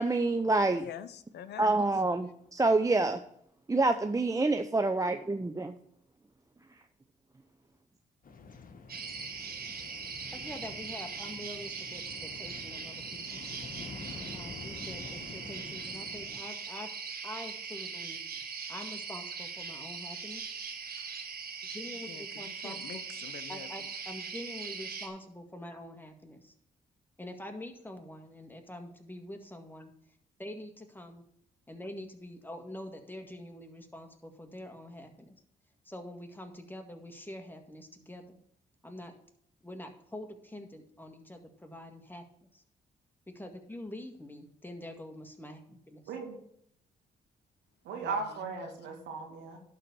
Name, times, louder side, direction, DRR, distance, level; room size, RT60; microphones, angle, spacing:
voice 1, 0.0-0.8 1.6-3.2 3.7-5.7, right 2 dB, 20° right, 7 dB, 0.7 m, -27 dB
voice 2, 0.7-1.8 22.1-23.9 48.0-48.5, left 9 dB, 70° left, 13 dB, 0.7 m, -46 dB
sound 1, 8.2-16.4, left 4 dB, 50° left, 1.3 m, -48 dB
sound 2, 8.9-25.1, right 5 dB, 60° right, 1.6 m, -41 dB
voice 3, 10.3-13.5 14.1-16.9 17.2-18.4 18.7-20.5 21.7-23.0 23.5-26.5 27.2-29.9 30.4-31.2 31.7-35.3 35.9-38.4 38.8-39.1 39.6-42.2 42.5-42.6 43.3-46.1, left 1 dB, 10° left, 5 dB, 1.9 m, -45 dB
voice 4, 15.1-15.5 46.1-46.4 47.8-49.6, right 4 dB, 85° right, 1 dB, 2.1 m, -37 dB
11.5 x 4.1 x 7.0 m, 0.69 s
supercardioid pair, 50°, 18 cm